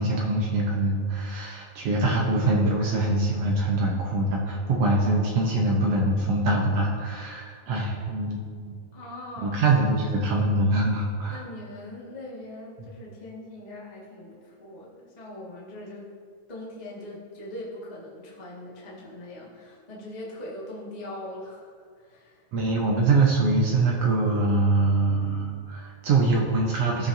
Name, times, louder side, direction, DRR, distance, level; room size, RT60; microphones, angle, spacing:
voice 1, 0.0-8.8 9.4-11.4 12.8-12.9 22.5-27.1, right 2 dB, 70° right, -2 dB, 1.5 m, -24 dB
voice 2, 8.9-10.2 11.3-16.1 16.5-22.5, left 1 dB, 35° left, -6 dB, 0.6 m, -41 dB
15.5 x 7.1 x 2.7 m, 2.1 s
omnidirectional pair, 4.1 m